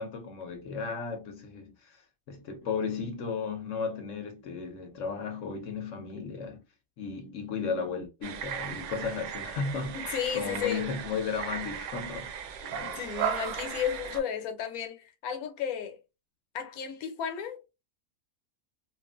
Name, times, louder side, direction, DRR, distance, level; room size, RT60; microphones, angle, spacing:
voice 1, 0.0-2.0 2.3-6.6 7.0-13.0, left 5 dB, 65° left, 0.9 m, -35 dB
sound 1, 8.2-14.2, right 8 dB, 70° right, 0.8 m, -36 dB
voice 2, 9.9-10.8 12.6-16.0 16.5-17.6, left 8 dB, 85° left, 1.2 m, -33 dB
2.8 x 2.4 x 2.3 m
omnidirectional pair, 1.5 m